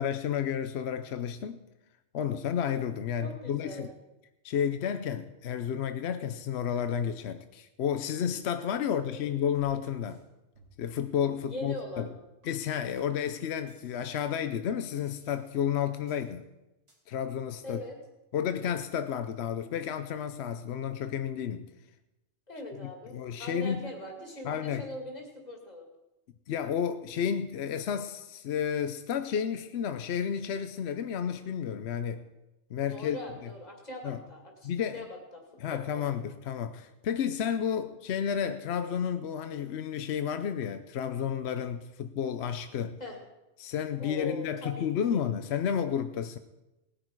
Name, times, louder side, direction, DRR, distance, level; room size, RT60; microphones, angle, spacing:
voice 1, 0.0-1.6 2.1-3.9 4.4-10.2 10.8-12.1 12.4-16.5 17.1-17.8 18.3-21.7 23.1-23.9 24.4-24.9 26.5-32.3 32.7-33.5 34.0-34.2 34.6-35.0 35.6-43.0 43.6-46.4, left 8 dB, 65° left, 9 dB, 0.9 m, -31 dB
voice 2, 3.2-3.8 8.6-9.3 11.4-12.1 17.6-18.0 22.5-25.9 32.9-35.1 35.3-35.4 35.7-36.1 43.0-43.2 44.0-45.2, equal, 35° left, 1 dB, 2.4 m, -41 dB
sound 1, 9.5-10.2 10.6-10.9 11.2-11.4 11.8-12.1 12.4-12.5 12.9-13.1 13.7-14.3 14.9-15.7 16.1-16.4 16.9-17.0, right 2 dB, 80° right, 4.0 m, -61 dB
19.0 x 10.0 x 4.6 m, 0.99 s
omnidirectional pair, 1.2 m